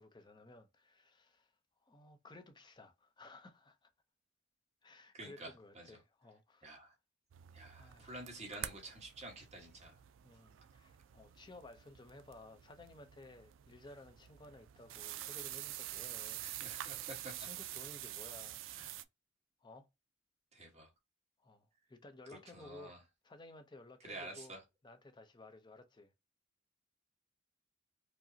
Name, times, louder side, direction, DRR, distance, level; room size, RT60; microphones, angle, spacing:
voice 1, 0.0-1.5 1.8-3.9 4.8-6.8 7.7-8.2 10.2-16.5 16.8-17.1 17.4-18.7 19.6-19.9 21.4-23.0 23.2-24.5 24.8-26.1, left 2 dB, 20° left, 0.5 m, -56 dB
voice 2, 5.1-6.0 6.6-6.9 7.5-10.0 16.4-17.5 18.7-18.9 20.5-20.9 22.3-23.0 24.0-24.6, right 2 dB, 35° right, 1.3 m, -50 dB
sound 1, 7.3-19.0, right 13 dB, 65° right, 0.3 m, -47 dB
4.7 x 2.0 x 2.7 m
head